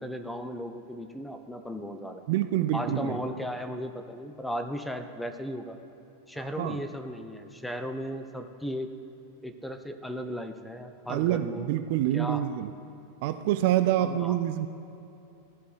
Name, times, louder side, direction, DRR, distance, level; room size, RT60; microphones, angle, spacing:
voice 1, 0.0-2.2 2.7-5.8 6.3-8.9 9.4-11.7 12.1-12.4 14.0-14.4, equal, 5° left, 6 dB, 0.5 m, -36 dB
voice 2, 2.3-3.2 6.6-6.8 11.1-12.7 13.2-14.7, right 12 dB, 50° right, 10 dB, 0.3 m, -26 dB
14.0 x 4.7 x 4.4 m, 2.9 s
figure-of-eight pair, 90°, 0 cm